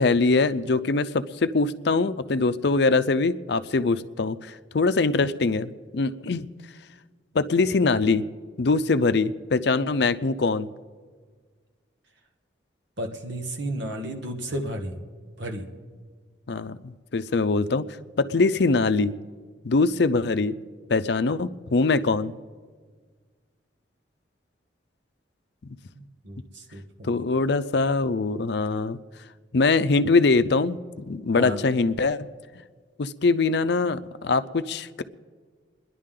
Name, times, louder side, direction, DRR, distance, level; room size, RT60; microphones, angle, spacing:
voice 1, 0.0-5.7 5.9-6.5 7.3-8.3 8.6-10.7 16.5-17.8 18.2-19.2 19.6-20.5 20.9-22.3 25.6-25.8 27.0-29.0 29.5-32.3 33.0-35.0, left 3 dB, 60° left, 13 dB, 0.5 m, -23 dB
voice 2, 13.0-14.9 15.4-15.6 26.2-27.2 31.4-31.6, right 1 dB, 70° right, 3 dB, 1.6 m, -32 dB
28.5 x 11.0 x 3.8 m, 1.5 s
head